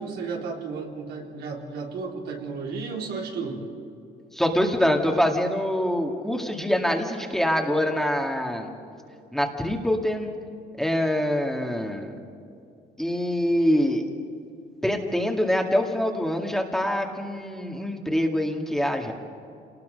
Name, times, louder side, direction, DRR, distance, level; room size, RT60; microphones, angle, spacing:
voice 1, 0.0-3.7, right 4 dB, 70° right, 0 dB, 3.6 m, -33 dB
voice 2, 4.3-8.7 9.3-10.3 10.8-12.2 13.0-14.0 14.8-19.1, equal, ahead, 2 dB, 2.1 m, -25 dB
27.5 x 19.5 x 5.3 m, 2.6 s
cardioid pair, 110°, 17 cm